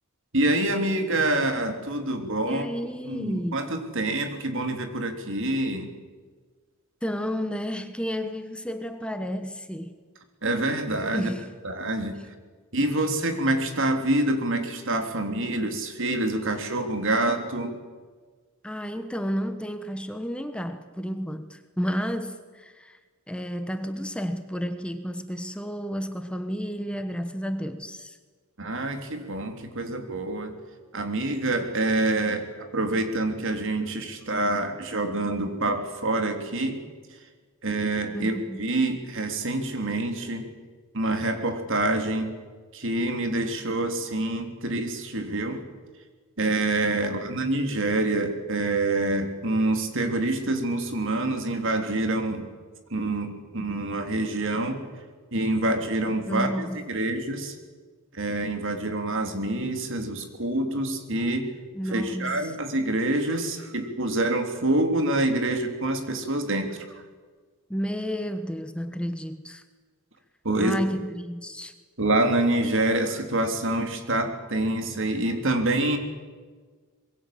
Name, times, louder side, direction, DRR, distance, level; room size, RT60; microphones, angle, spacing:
voice 1, 0.3-2.7 3.0-5.9 10.4-11.3 11.6-12.1 12.7-17.8 28.6-30.5 30.9-36.8 37.1-37.2 37.6-40.5 40.9-42.3 42.7-45.6 46.4-52.5 52.9-54.8 55.3-57.6 58.1-61.5 61.9-66.8 70.4-70.8 72.0-76.0, right 2 dB, 60° right, 6 dB, 3.3 m, -26 dB
voice 2, 2.4-3.6 7.0-10.0 11.1-11.5 18.6-23.0 23.3-28.2 38.1-38.6 47.0-47.1 56.3-56.8 61.7-62.4 67.7-69.6 70.6-71.7, equal, 5° left, 8 dB, 1.2 m, -31 dB
25.0 x 22.0 x 7.7 m, 1.5 s
head